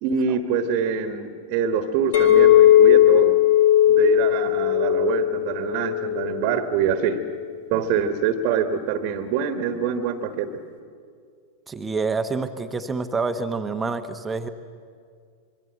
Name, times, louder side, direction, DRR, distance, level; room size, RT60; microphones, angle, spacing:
voice 1, 0.0-3.4 3.8-7.2 7.7-10.6, right 7 dB, 45° right, 7 dB, 1.5 m, -25 dB
Chink clink, 2.1-6.5 6.9-7.3, left 12 dB, 65° left, 3.5 m, -17 dB
voice 2, 11.7-14.5, right 4 dB, 15° right, 8 dB, 1.1 m, -27 dB
26.0 x 22.5 x 7.8 m, 2.2 s
figure-of-eight pair, 90°, 0 cm